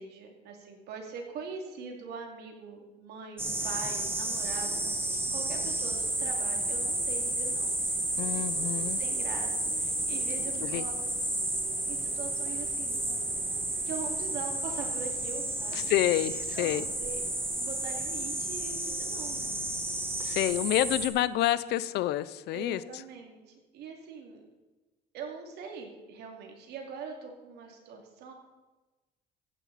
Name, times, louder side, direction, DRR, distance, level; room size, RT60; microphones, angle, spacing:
voice 1, 0.0-4.9 5.3-8.7 9.0-11.0 11.9-13.1 13.9-15.9 16.5-17.2 17.5-20.4 22.5-24.4 25.1-28.3, right 5 dB, 75° right, 2 dB, 2.6 m, -43 dB
sound 1, 3.4-21.1, right 2 dB, 15° right, 1.7 m, -32 dB
voice 2, 8.2-9.0 10.6-10.9 15.7-16.9 20.2-23.0, left 14 dB, 75° left, 16 dB, 0.6 m, -28 dB
14.5 x 10.5 x 4.1 m, 1.1 s
cardioid pair, 110°, 17 cm